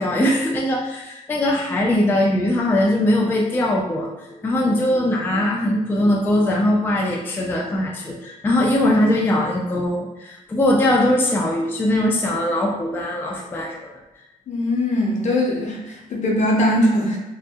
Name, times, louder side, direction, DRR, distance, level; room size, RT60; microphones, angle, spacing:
voice 1, 0.0-13.8, left 1 dB, 15° left, -2 dB, 0.3 m, -21 dB
voice 2, 14.5-17.2, left 1 dB, 55° left, -1 dB, 0.6 m, -21 dB
2.6 x 2.1 x 2.2 m, 0.99 s
cardioid pair, 105°, 15 cm